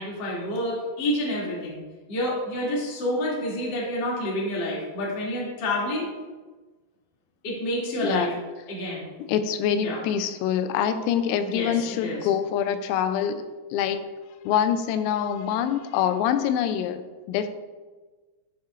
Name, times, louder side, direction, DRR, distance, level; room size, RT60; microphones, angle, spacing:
voice 1, 0.0-1.8 2.1-6.1 7.4-8.3 8.7-9.0 9.8-10.0 11.5-12.2, left 1 dB, 35° left, -5 dB, 1.9 m, -28 dB
voice 2, 8.0-8.3 9.3-13.4 13.7-14.0 14.5-17.5, left 9 dB, 90° left, 9 dB, 3.4 m, -25 dB
12.0 x 8.6 x 2.5 m, 1.3 s
omnidirectional pair, 6.0 m